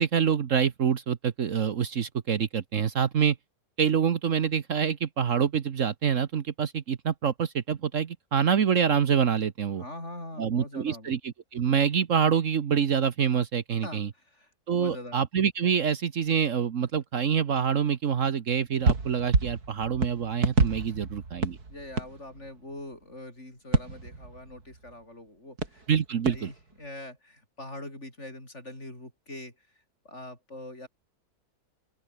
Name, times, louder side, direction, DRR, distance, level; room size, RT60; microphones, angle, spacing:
voice 1, 0.0-3.3 3.8-9.8 10.4-14.1 14.7-21.6 25.9-26.5, right 7 dB, 60° right, 1.4 m, -26 dB
voice 2, 9.8-11.2 13.8-14.5 14.8-15.2 21.7-25.8 26.3-29.5 30.0-30.9, left 1 dB, 45° left, 8.3 m, -43 dB
sound 1, 18.8-22.7 23.7-24.9 25.6-26.6, right 3 dB, 85° right, 4.1 m, -29 dB
open air
omnidirectional pair, 1.6 m